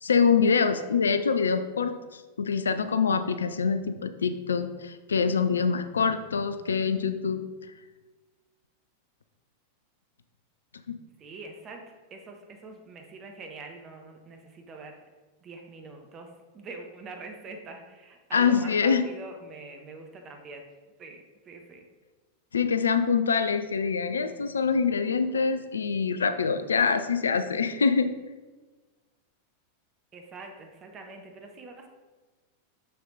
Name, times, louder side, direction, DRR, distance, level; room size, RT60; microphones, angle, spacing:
voice 1, 0.0-7.4 10.9-11.0 18.3-19.0 22.5-28.1, left 5 dB, 70° left, 10 dB, 0.4 m, -25 dB
voice 2, 11.2-14.9 15.4-20.6 21.0-21.8 30.1-31.9, right 3 dB, 30° right, 3 dB, 1.3 m, -44 dB
6.7 x 6.7 x 3.9 m, 1.3 s
figure-of-eight pair, 90°, 0 cm